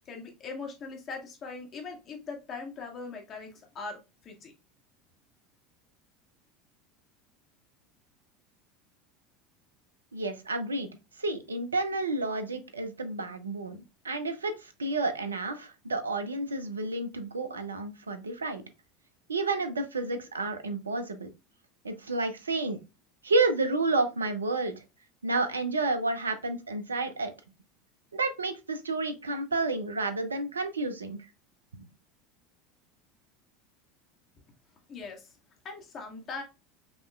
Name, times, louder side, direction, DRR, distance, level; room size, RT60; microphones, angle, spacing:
voice 1, 0.0-4.5 34.9-35.3 35.6-36.4, left 4 dB, 40° left, 2 dB, 1.5 m, -40 dB
voice 2, 10.1-18.6 19.3-21.3 21.8-22.8 23.2-24.8 25.2-27.3 28.1-31.2, right 3 dB, 85° right, 8 dB, 0.5 m, -30 dB
5.3 x 2.9 x 2.2 m, 0.27 s
hypercardioid pair, 75°, 0 cm